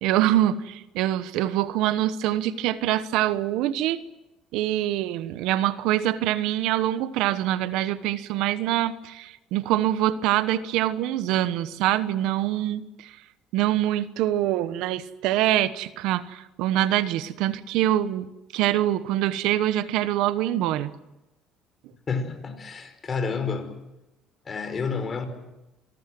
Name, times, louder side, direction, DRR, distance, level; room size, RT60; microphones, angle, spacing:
voice 1, 0.0-4.0 4.5-13.1 13.5-18.3 18.5-20.9, right 13 dB, 80° right, 14 dB, 1.1 m, -24 dB
voice 2, 22.1-23.7 24.4-25.3, left 5 dB, 35° left, 8 dB, 4.8 m, -29 dB
26.0 x 19.5 x 7.8 m, 0.96 s
supercardioid pair, 95°, 0 cm